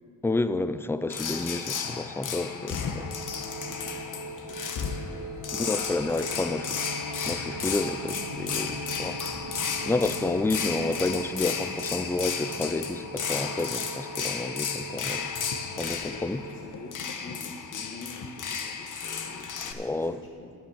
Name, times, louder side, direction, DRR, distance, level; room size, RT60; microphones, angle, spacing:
voice 1, 0.2-2.8 5.5-7.0 7.3-9.4 9.9-15.3 15.8-16.4 19.8-20.2, left 2 dB, 5° left, 13 dB, 0.3 m, -30 dB
sound 1, 1.1-19.7, left 6 dB, 50° left, 1.0 m, -34 dB
voice 2, 2.3-6.8 16.0-20.5, left 3 dB, 30° left, 0 dB, 1.2 m, -47 dB
sound 2, 2.9-16.7, right 1 dB, 50° right, 1.7 m, -41 dB
sound 3, 6.0-17.1, right 3 dB, 70° right, 1.6 m, -47 dB
11.5 x 7.3 x 7.1 m, 2.1 s
cardioid pair, 100°, 39 cm